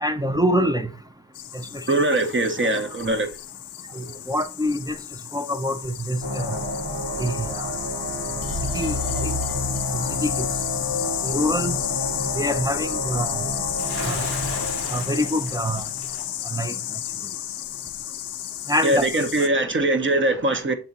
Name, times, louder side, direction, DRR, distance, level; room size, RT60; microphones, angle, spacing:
voice 1, 0.0-0.9 1.7-2.0 4.0-5.0 5.3-6.6 7.2-7.7 8.7-9.3 9.9-10.3 11.2-11.7 12.3-13.5 14.0-14.2 14.9-15.8 16.5-16.7 18.7-19.1, equal, 10° right, 0.4 m, -25 dB
sound 1, 1.3-19.5, left 13 dB, 85° left, 0.5 m, -32 dB
voice 2, 1.9-3.3 3.9-4.0 18.8-20.7, right 2 dB, 30° right, 0.9 m, -22 dB
sound 2, 6.2-16.8, equal, 55° right, 1.7 m, -30 dB
Bathtub (filling or washing) / Splash splatter, 13.8-16.3, equal, 80° right, 2.6 m, -36 dB
7.0 x 3.5 x 4.1 m
wide cardioid pair, 105°, 39 cm